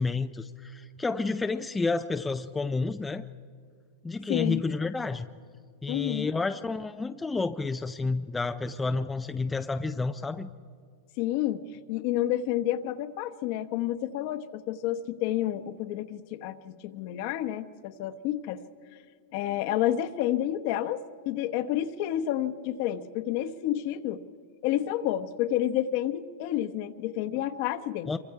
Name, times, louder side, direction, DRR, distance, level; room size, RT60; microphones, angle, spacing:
voice 1, 0.0-3.2 4.0-5.3 5.8-10.5 28.1-28.2, left 3 dB, 10° left, 8 dB, 0.4 m, -30 dB
voice 2, 4.3-4.6 5.9-6.3 11.2-18.6 19.3-24.2 24.6-28.1, left 12 dB, 50° left, 9 dB, 1.0 m, -30 dB
26.0 x 24.0 x 4.8 m, 2.2 s
supercardioid pair, 155°, 0 cm